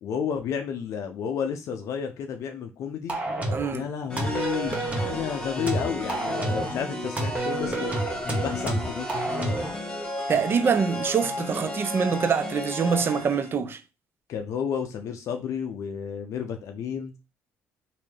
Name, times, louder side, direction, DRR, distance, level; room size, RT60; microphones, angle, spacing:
voice 1, 0.0-3.2 3.7-9.2 14.3-17.1, left 7 dB, 65° left, 0.5 m, -31 dB
sound 1, 3.1-3.7 4.2-5.2 5.7-6.8 7.2-9.8, right 2 dB, 25° right, 1.1 m, -29 dB
voice 2, 3.5-3.9 10.3-13.8, right 6 dB, 40° right, 0.5 m, -25 dB
sound 2, 4.1-13.5, left 1 dB, 15° left, 1.6 m, -33 dB
3.1 x 2.6 x 3.3 m
supercardioid pair, 80°, 6 cm